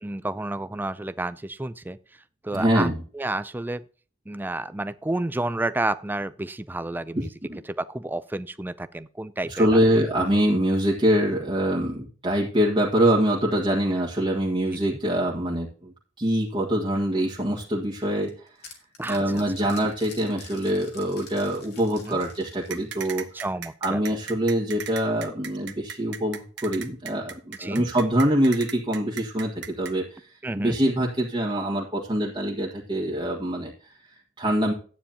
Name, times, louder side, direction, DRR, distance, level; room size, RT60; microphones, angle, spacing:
voice 1, 0.0-3.8 4.3-7.3 7.8-9.8 14.9-15.0 19.0-19.4 22.0-22.2 23.3-24.0 27.6-27.8 30.4-30.8, right 2 dB, 10° right, 0.4 m, -31 dB
voice 2, 2.5-3.0 7.1-7.6 9.5-18.5 19.1-23.2 23.8-34.7, right 1 dB, 25° right, 1.7 m, -24 dB
sound 1, 17.9-23.5, left 4 dB, 55° left, 2.7 m, -48 dB
sound 2, 22.7-29.9, right 7 dB, 65° right, 1.0 m, -37 dB
12.5 x 9.4 x 2.9 m
head